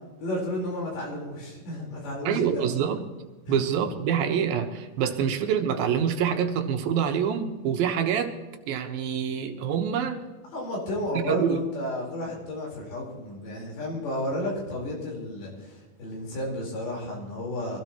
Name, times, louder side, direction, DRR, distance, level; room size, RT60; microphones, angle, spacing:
voice 1, 0.2-2.7 3.5-3.6 10.5-17.8, left 1 dB, 90° left, 6.3 m, -32 dB
voice 2, 2.3-3.0 3.5-8.4 8.7-10.3 11.3-11.6, right 8 dB, 80° right, 2.9 m, -26 dB
23.5 x 16.0 x 3.0 m
omnidirectional pair, 4.2 m